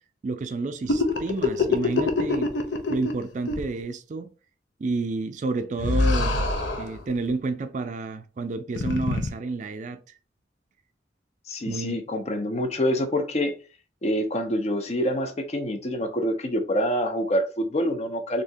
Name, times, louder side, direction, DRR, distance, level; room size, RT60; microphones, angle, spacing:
voice 1, 0.2-2.5 2.9-4.3 4.8-6.4 6.8-10.0 11.7-12.0, right 3 dB, 45° right, 0.3 m, -30 dB
sound 1, 0.9-3.2 3.5-3.6 5.8-7.0 8.7-9.3, left 3 dB, 90° left, 0.6 m, -24 dB
voice 2, 11.5-13.5 14.0-18.4, equal, 40° left, 0.5 m, -26 dB
3.4 x 2.7 x 2.6 m
head